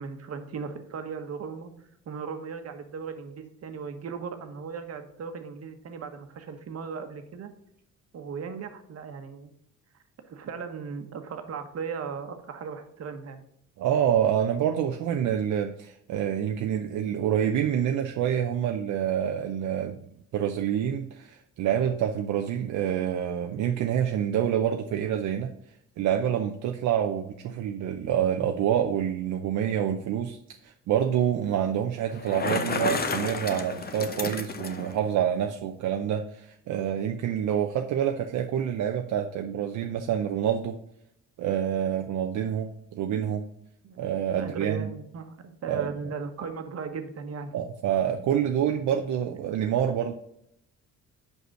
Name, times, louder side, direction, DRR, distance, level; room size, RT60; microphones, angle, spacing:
voice 1, 0.0-1.7 2.1-7.5 8.1-9.5 10.2-13.4 43.8-44.0 44.4-47.6, right 5 dB, 55° right, 7 dB, 1.2 m, -37 dB
voice 2, 13.8-20.0 20.3-25.5 26.0-30.4 30.6-40.7 41.4-43.4 44.0-44.9 45.6-45.9 47.5-50.1, right 9 dB, 75° right, 4 dB, 0.6 m, -27 dB
Bicycle, 32.1-34.9, left 4 dB, 30° left, 0.8 m, -31 dB
5.3 x 4.8 x 6.3 m, 0.72 s
cardioid pair, 90°, 30 cm